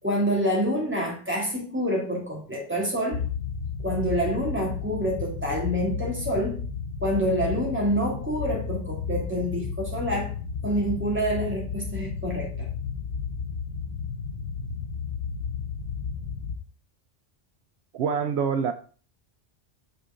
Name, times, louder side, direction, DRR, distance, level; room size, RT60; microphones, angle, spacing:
voice 1, 0.0-3.2 3.8-6.6 7.0-10.3 10.6-12.7, equal, 10° right, -3 dB, 2.5 m, -27 dB
sound 1, 3.1-16.6, left 6 dB, 70° left, 1.0 m, -33 dB
voice 2, 17.9-18.7, right 6 dB, 75° right, 9 dB, 0.8 m, -25 dB
7.9 x 4.9 x 3.7 m, 0.41 s
omnidirectional pair, 1.1 m